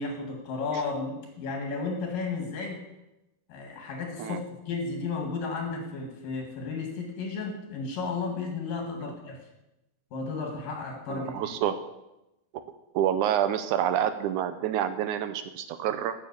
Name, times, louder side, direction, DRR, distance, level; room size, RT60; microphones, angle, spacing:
voice 1, 0.0-2.8 3.5-9.4 10.1-11.5, left 4 dB, 80° left, 2 dB, 3.7 m, -33 dB
voice 2, 11.1-11.8 12.9-16.1, right 10 dB, 75° right, 10 dB, 1.9 m, -28 dB
9.8 x 6.8 x 8.3 m, 0.93 s
omnidirectional pair, 3.9 m